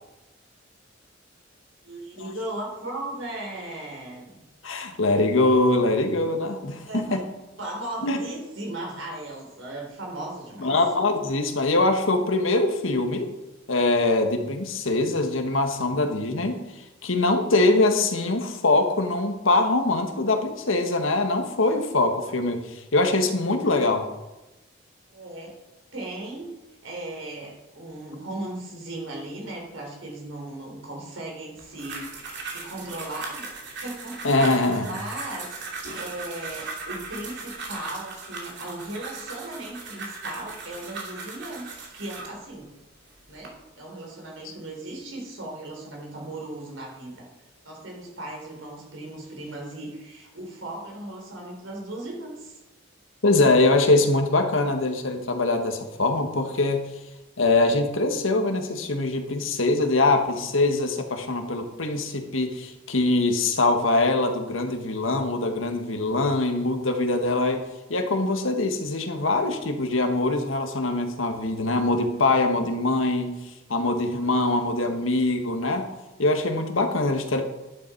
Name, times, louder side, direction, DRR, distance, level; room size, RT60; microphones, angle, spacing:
voice 1, 1.8-4.4 6.8-7.3 7.6-10.7 25.1-25.5 25.9-26.5 26.8-32.1 32.5-33.5 33.8-34.2 34.7-42.7 43.3-47.3 47.6-52.6, right 1 dB, 80° right, 0 dB, 4.2 m, -37 dB
voice 2, 4.6-7.2 8.0-8.3 10.6-13.3 13.7-16.6 17.0-22.6 22.9-24.1 34.2-34.9 44.4-44.5 53.2-56.8 57.4-67.6 67.9-73.3 73.7-75.9 76.2-77.4, left 2 dB, 90° left, 5 dB, 1.6 m, -23 dB
sound 1, 31.6-42.4 43.0-43.5, right 3 dB, 65° right, 2.8 m, -38 dB
11.5 x 10.5 x 4.6 m, 1.0 s
head